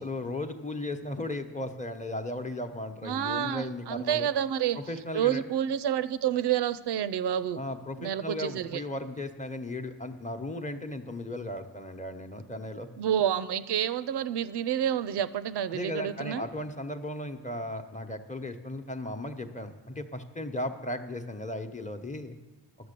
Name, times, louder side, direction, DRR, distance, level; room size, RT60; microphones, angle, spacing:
voice 1, 0.0-4.3 4.7-5.4 7.5-12.9 15.7-22.4, left 1 dB, 20° left, 7 dB, 1.0 m, -36 dB
voice 2, 3.0-4.8 5.1-7.6 8.0-8.8 13.0-16.4, right 10 dB, 75° right, 14 dB, 0.5 m, -29 dB
10.5 x 7.0 x 6.8 m, 1.3 s
cardioid pair, 50°, 41 cm